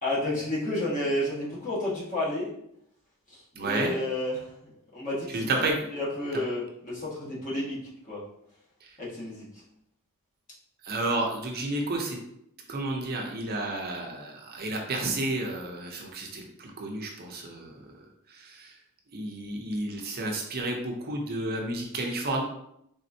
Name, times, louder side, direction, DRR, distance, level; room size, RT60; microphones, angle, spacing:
voice 1, 0.0-2.5 3.6-4.5 4.9-5.5 5.9-7.8 8.1-8.2 9.0-9.5, left 1 dB, 35° left, -7 dB, 1.5 m, -30 dB
voice 2, 3.6-3.9 5.3-5.7 6.3-6.4 8.8-9.0 10.8-12.2 12.7-17.8 18.3-18.7 19.1-22.4, right 2 dB, 45° right, 1 dB, 0.6 m, -31 dB
4.2 x 3.5 x 2.7 m, 0.76 s
head